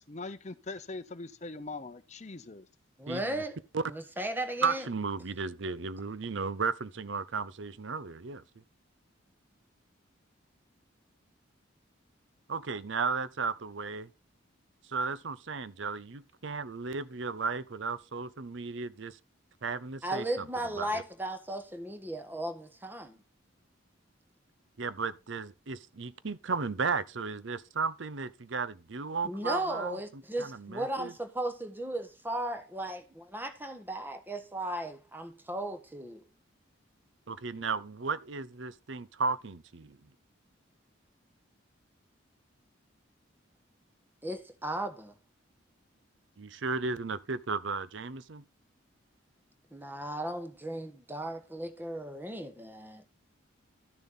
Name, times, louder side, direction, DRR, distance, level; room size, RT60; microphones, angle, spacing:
voice 1, 0.1-2.6, left 3 dB, 35° left, 0.7 m, -41 dB
voice 2, 3.0-3.6 3.8-4.8 20.0-23.2 29.2-36.2 44.2-45.1 49.7-53.0, right 1 dB, 10° right, 1.3 m, -36 dB
voice 3, 4.6-8.4 12.5-14.1 14.9-19.2 19.6-20.5 20.8-21.0 24.8-31.1 37.3-40.0 46.4-48.4, right 4 dB, 65° right, 0.7 m, -34 dB
12.5 x 7.0 x 3.9 m
head